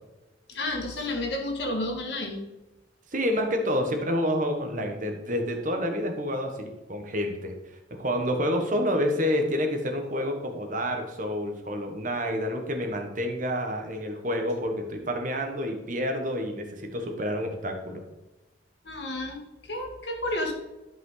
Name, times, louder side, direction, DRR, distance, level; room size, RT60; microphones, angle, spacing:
voice 1, 0.5-2.4 18.8-20.5, left 1 dB, 65° left, 2 dB, 1.9 m, -31 dB
voice 2, 3.1-7.5 8.0-18.0, equal, 45° right, 4 dB, 1.4 m, -28 dB
11.5 x 5.5 x 4.0 m, 1.0 s
head